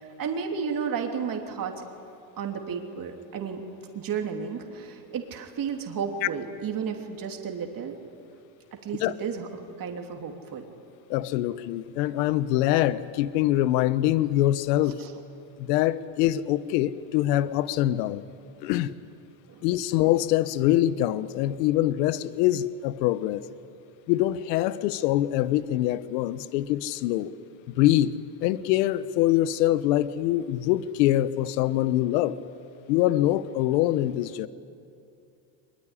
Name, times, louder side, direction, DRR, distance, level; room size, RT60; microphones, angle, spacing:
voice 1, 0.2-1.7 2.4-3.6 3.9-8.0 8.7-10.6 15.0-15.1 19.5-19.6, right 6 dB, 40° right, 3 dB, 3.1 m, -32 dB
voice 2, 11.1-15.0 15.6-18.2 18.6-18.9 19.6-23.4 24.1-27.3 27.7-28.1 28.4-32.4 32.9-34.5, left 14 dB, 75° left, 15 dB, 1.1 m, -24 dB
23.0 x 21.5 x 9.9 m, 2.6 s
supercardioid pair, 95°, 49 cm